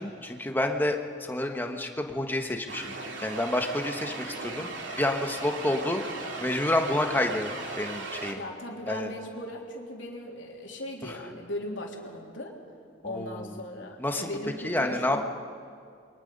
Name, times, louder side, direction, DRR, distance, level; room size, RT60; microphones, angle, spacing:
voice 1, 0.0-6.0 6.4-8.4 8.9-9.1 11.0-11.2 13.0-13.6 14.0-14.3 14.6-15.2, left 1 dB, 10° left, 3 dB, 1.4 m, -29 dB
sound 1, 2.7-8.3, right 3 dB, 75° right, 2.7 m, -37 dB
voice 2, 8.3-12.6 13.0-15.2, left 1 dB, 80° left, 0 dB, 3.3 m, -38 dB
29.0 x 22.5 x 5.4 m, 2.3 s
head